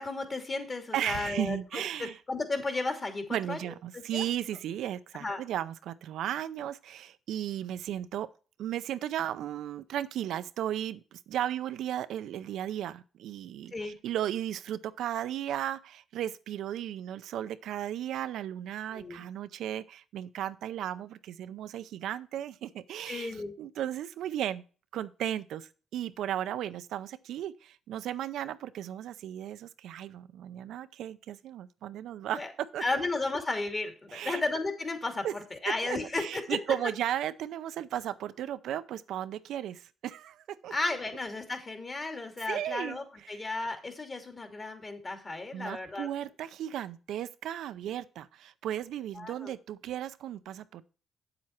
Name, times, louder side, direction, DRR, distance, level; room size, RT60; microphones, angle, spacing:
voice 1, 0.0-3.6 3.9-4.2 5.2-5.4 13.7-14.0 18.9-19.2 23.1-23.5 32.4-32.5 32.8-35.2 35.5-36.4 40.7-46.1 49.2-49.5, left 3 dB, 30° left, 2.6 m, -34 dB
voice 2, 0.9-2.2 3.3-8.3 8.6-24.6 24.9-32.8 34.1-34.4 35.2-35.3 35.8-40.7 42.5-43.4 45.5-50.8, right 11 dB, 80° right, 0.5 m, -35 dB
8.4 x 7.7 x 4.4 m
cardioid pair, 90°, 0 cm